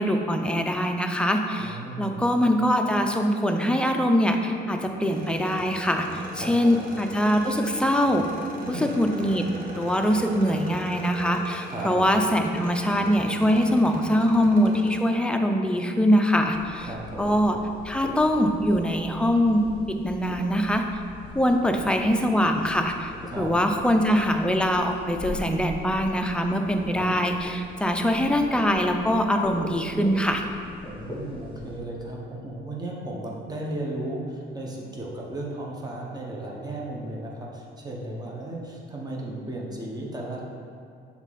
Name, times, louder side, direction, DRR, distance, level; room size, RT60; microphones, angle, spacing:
voice 1, 0.0-8.3 8.7-9.4 9.8-16.9 17.2-17.6 17.8-19.6 19.9-20.8 21.3-30.4, equal, 5° left, 3 dB, 0.5 m, -23 dB
voice 2, 1.6-2.2 6.3-6.8 8.6-8.9 11.7-11.9 16.8-17.4 23.3-23.5 27.0-27.1 30.9-40.4, right 1 dB, 20° right, -3 dB, 1.1 m, -35 dB
sound 1, 5.0-15.0, right 1 dB, 45° right, 1.1 m, -39 dB
sound 2, 16.5-31.8, left 2 dB, 25° left, 1.4 m, -41 dB
6.9 x 3.6 x 4.1 m, 2.3 s
cardioid pair, 90°, 20 cm